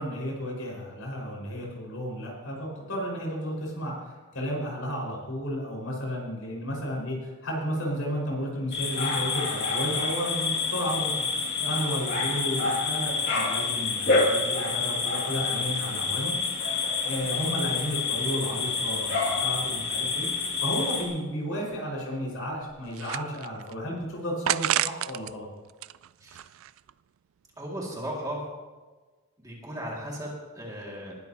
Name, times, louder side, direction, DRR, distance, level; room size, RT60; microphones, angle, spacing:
voice 1, 0.0-11.2 11.6-16.4 17.0-20.3 20.6-25.5, equal, 70° left, -3 dB, 5.2 m, -33 dB
sound 1, 8.7-21.0, left 4 dB, 45° left, 2.4 m, -28 dB
sound 2, 22.4-23.7 24.4-25.3 25.7-26.9, right 12 dB, 65° right, 0.3 m, -30 dB
voice 2, 27.6-28.4 29.4-31.1, right 1 dB, 15° right, -3 dB, 2.2 m, -36 dB
20.0 x 12.0 x 2.9 m, 1.3 s
head